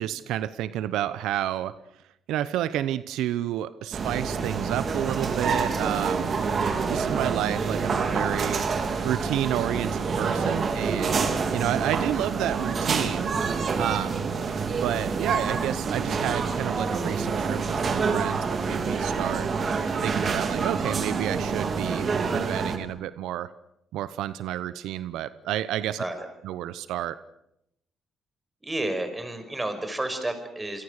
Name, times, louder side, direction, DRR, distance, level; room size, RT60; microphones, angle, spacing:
voice 1, 0.0-1.7 2.3-6.4 6.9-8.7 9.0-13.4 13.8-14.3 14.8-19.5 20.0-23.5 23.9-26.0 26.4-27.2, right 12 dB, 90° right, 15 dB, 0.9 m, -30 dB
sound 1, 3.9-22.8, right 5 dB, 45° right, 3.5 m, -27 dB
voice 2, 28.6-30.8, right 1 dB, 15° right, 8 dB, 5.8 m, -31 dB
27.5 x 23.5 x 6.6 m, 0.81 s
cardioid pair, 90°, 0 cm